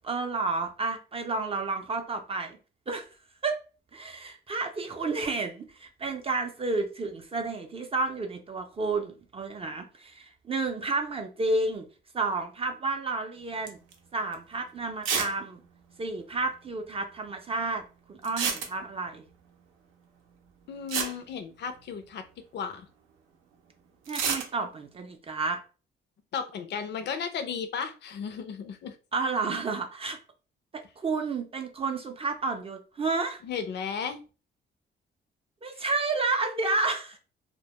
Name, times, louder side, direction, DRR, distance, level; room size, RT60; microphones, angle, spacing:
voice 1, 0.0-2.6 2.9-3.1 3.4-3.6 3.9-11.9 12.1-13.8 14.1-15.6 16.0-17.8 18.1-19.2 24.1-25.6 29.1-30.2 30.7-33.4 35.6-37.2, right 3 dB, 30° right, 4 dB, 0.4 m, -31 dB
sound 1, 13.7-13.9 14.3-14.4 15.0-15.4 15.6-15.7 15.9-16.0 18.2-19.1 20.5-20.6 20.9-22.1 24.0-24.5, right 6 dB, 85° right, 0.5 m, -30 dB
voice 2, 20.7-22.3 22.5-22.9 26.3-29.0 33.4-34.2 35.7-35.8, left 6 dB, 60° left, 9 dB, 0.5 m, -34 dB
2.2 x 2.0 x 2.8 m, 0.34 s
cardioid pair, 90°, 20 cm